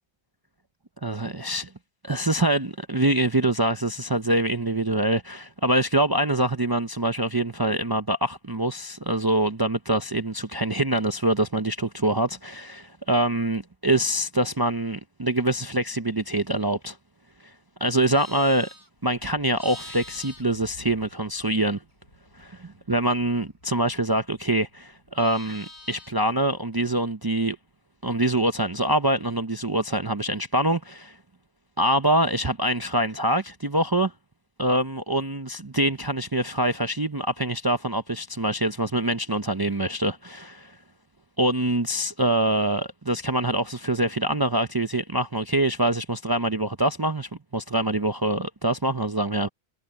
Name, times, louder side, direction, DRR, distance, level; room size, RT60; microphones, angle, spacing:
voice 1, 1.0-1.7 2.0-17.0 17.8-18.7 19.0-21.8 22.4-27.6 28.0-31.1 31.8-34.1 34.6-40.7 41.4-49.5, right 1 dB, 25° right, 0.7 m, -25 dB
Livestock farm animals working animals, 17.9-21.6 21.9-24.4 24.7-26.3, left 1 dB, 85° left, 5.5 m, -47 dB
omnidirectional pair, 1.1 m